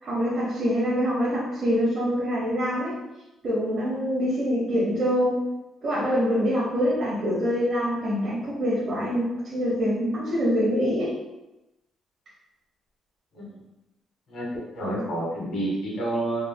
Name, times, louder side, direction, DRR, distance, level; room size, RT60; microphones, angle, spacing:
voice 1, 0.0-3.0 3.4-5.4 5.8-11.1, equal, 45° right, -8 dB, 0.7 m, -25 dB
voice 2, 14.3-16.5, right 1 dB, 65° left, -5 dB, 1.4 m, -29 dB
3.0 x 2.6 x 2.2 m, 0.99 s
cardioid pair, 145°, 0 cm